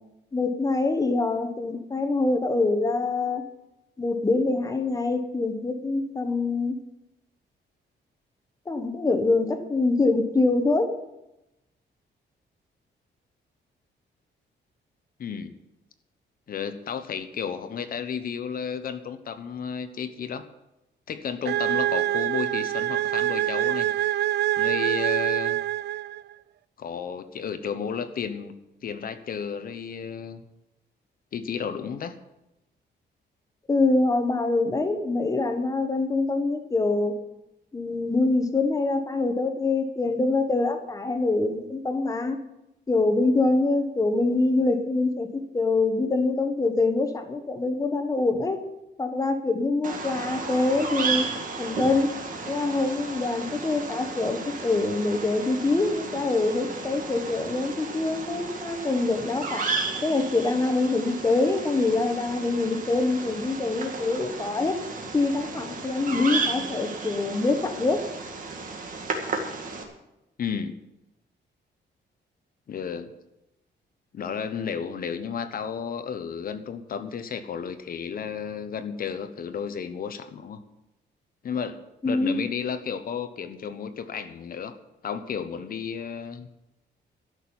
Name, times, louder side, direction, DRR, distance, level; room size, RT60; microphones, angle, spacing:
voice 1, 0.3-3.4 4.0-6.7 8.7-11.0 33.7-37.2 37.7-42.4 42.9-48.6 49.0-51.3 51.6-52.1 52.5-59.7 60.0-64.9 65.1-68.1 82.0-82.4, left 3 dB, 20° left, 7 dB, 1.3 m, -25 dB
voice 2, 15.2-15.6 16.5-20.4 21.1-23.9 24.6-25.6 26.8-28.5 28.8-30.4 31.3-32.1 70.4-70.8 72.7-73.1 74.1-80.6 81.4-84.8 85.0-86.5, left 7 dB, 50° left, 10 dB, 1.0 m, -33 dB
sound 1, 21.4-26.3, right 14 dB, 65° right, 0.4 m, -25 dB
Bird vocalization bird call bird song, 49.8-69.8, right 4 dB, 45° right, 2.0 m, -33 dB
13.0 x 6.5 x 9.6 m, 0.91 s
wide cardioid pair, 165°, 19 cm